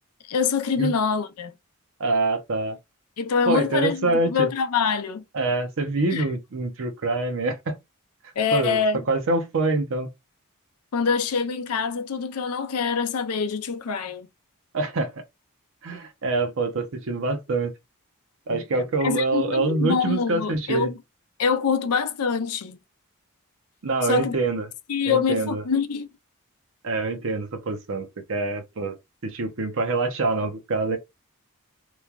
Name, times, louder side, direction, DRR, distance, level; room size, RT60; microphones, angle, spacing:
voice 1, 0.3-1.5 3.2-5.2 6.1-6.2 8.4-9.0 10.9-14.3 18.5-21.0 21.4-22.8 24.0-24.4 24.9-26.1, left 5 dB, 80° left, 0.5 m, -25 dB
voice 2, 2.0-2.8 3.5-4.5 5.3-7.8 8.5-8.8 9.1-10.1 14.7-15.1 15.8-17.7 18.5-20.9 23.8-24.7 25.0-25.6 26.8-29.0 29.2-31.0, right 3 dB, 60° right, 0.6 m, -25 dB
3.0 x 2.2 x 2.3 m
head